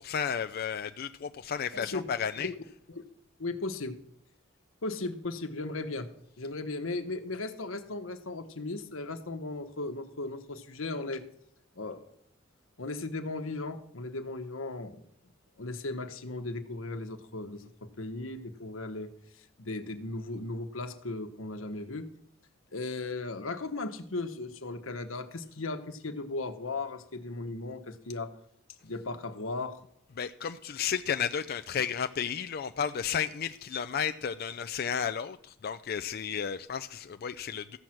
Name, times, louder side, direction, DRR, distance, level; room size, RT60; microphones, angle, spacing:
voice 1, 0.0-2.5 30.2-37.8, left 7 dB, 50° left, 9 dB, 0.4 m, -33 dB
voice 2, 1.7-2.1 2.4-2.6 2.9-3.0 3.4-4.0 4.8-6.1 6.4-11.2 11.7-12.1 12.8-15.0 15.6-19.1 19.6-22.1 22.7-28.3 28.8-29.8, left 2 dB, 90° left, 8 dB, 1.2 m, -36 dB
14.0 x 5.9 x 7.7 m, 0.73 s
head